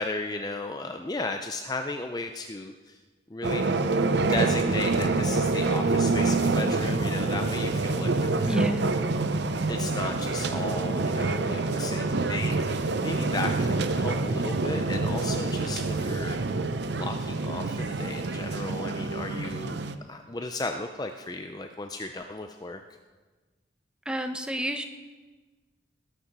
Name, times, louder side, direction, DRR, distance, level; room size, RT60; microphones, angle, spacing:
voice 1, 0.0-3.0 3.3-3.7 4.3-8.6 9.7-16.4 16.9-22.8, left 2 dB, 20° left, 5 dB, 0.5 m, -35 dB
sound 1, 3.4-19.9, right 3 dB, 65° right, 0.7 m, -27 dB
voice 2, 8.5-8.9 24.1-24.8, right 1 dB, 5° right, 6 dB, 0.8 m, -30 dB
20.0 x 6.8 x 6.1 m, 1.3 s
head